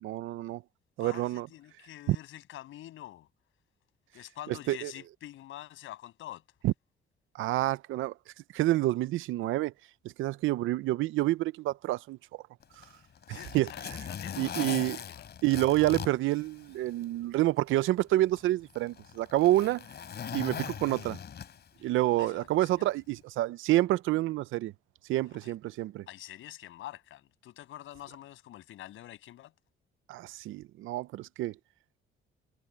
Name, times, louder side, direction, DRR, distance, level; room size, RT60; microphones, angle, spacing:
voice 1, 0.0-0.6 1.0-1.5 2.1-2.2 4.5-4.9 6.6-6.7 7.4-8.1 8.5-9.7 10.2-12.2 13.3-13.7 14.4-15.0 15.4-19.8 20.3-21.2 21.8-24.7 25.1-26.0 30.1-31.5, right 16 dB, 85° right, 0.6 m, -28 dB
voice 2, 1.0-3.3 4.1-6.4 13.3-15.3 21.8-21.9 22.2-22.9 25.4-25.5 26.1-29.5, left 13 dB, 85° left, 7.3 m, -46 dB
Zipper (clothing), 12.6-17.1 17.5-17.6 18.4-21.8 23.0-23.2, left 8 dB, 55° left, 4.4 m, -40 dB
cardioid pair, 90°, 20 cm